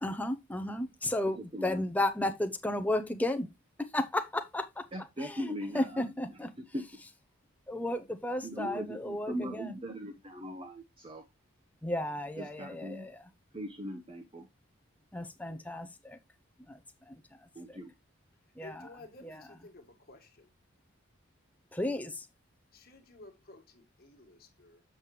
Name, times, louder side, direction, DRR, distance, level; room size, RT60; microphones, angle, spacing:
voice 1, 0.0-3.5 3.9-4.8 5.2-6.5 7.7-9.7 11.8-13.2 15.1-16.2 16.7-16.8 17.1-17.2 17.7-17.8 18.6-18.9 19.2-19.4 21.7-22.3, left 1 dB, 5° left, 0.6 m, -33 dB
voice 2, 1.5-1.8 4.9-6.1 6.6-6.8 8.4-11.2 12.4-13.1 13.5-14.5 17.6-17.9, equal, 25° right, 0.8 m, -39 dB
voice 3, 18.6-20.5 22.7-24.8, left 2 dB, 45° left, 1.6 m, -53 dB
7.4 x 6.6 x 3.1 m
head